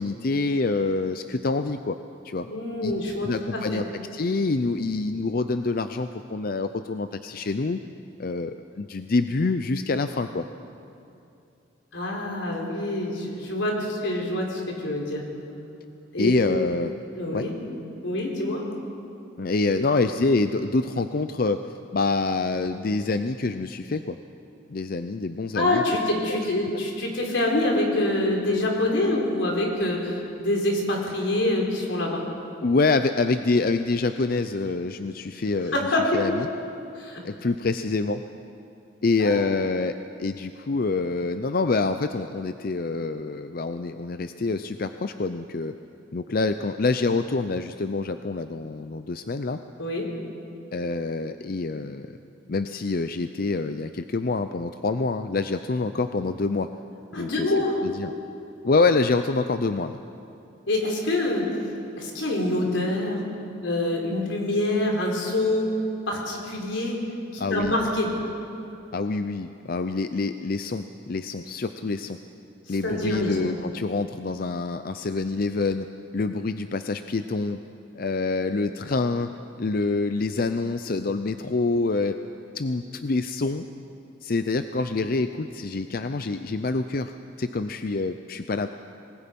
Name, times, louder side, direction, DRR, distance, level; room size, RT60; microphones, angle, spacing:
voice 1, 0.0-2.0 2.2-2.5 2.8-2.9 3.2-3.9 4.1-7.8 8.2-10.4 16.2-16.9 17.3-17.5 19.4-21.6 21.9-24.2 24.7-25.8 32.6-35.8 36.1-36.5 37.2-38.2 39.0-45.7 46.1-49.6 50.7-52.2 52.5-56.7 57.2-57.5 57.8-58.1 58.6-60.0 67.4-67.8 68.9-72.2 72.7-75.9 76.1-77.6 78.0-79.3 79.6-82.2 82.5-83.6 84.2-88.7, left 3 dB, 50° left, 9 dB, 0.5 m, -26 dB
voice 2, 2.4-3.8 11.9-15.2 16.1-16.4 17.1-17.5 18.0-18.7 19.8-19.9 25.5-32.2 35.7-36.2 37.0-37.2 39.2-39.5 49.8-50.1 57.1-57.8 60.7-61.5 62.0-63.2 63.6-65.7 66.1-67.0 67.3-68.1 72.7-73.5, left 1 dB, 90° left, -1 dB, 4.4 m, -26 dB
27.0 x 20.5 x 5.4 m, 2.7 s
head